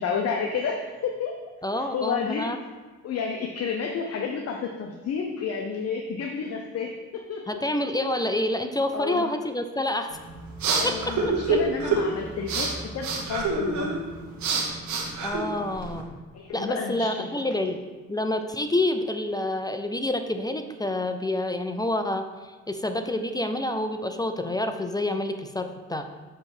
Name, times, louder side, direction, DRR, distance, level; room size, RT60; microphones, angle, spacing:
voice 1, 0.0-1.4 1.8-2.5 3.0-7.6 8.9-9.3 10.7-13.9 16.3-17.3, left 6 dB, 55° left, 2 dB, 0.7 m, -31 dB
voice 2, 1.6-2.6 7.5-10.1 10.8-10.9 11.5-11.6 15.2-16.1 16.5-17.8 18.1-26.1, left 1 dB, 15° left, 7 dB, 0.4 m, -28 dB
sound 1, 10.1-16.0, right 4 dB, 70° right, 1.3 m, -28 dB
6.7 x 3.3 x 6.1 m, 1.3 s
cardioid pair, 90°, 30 cm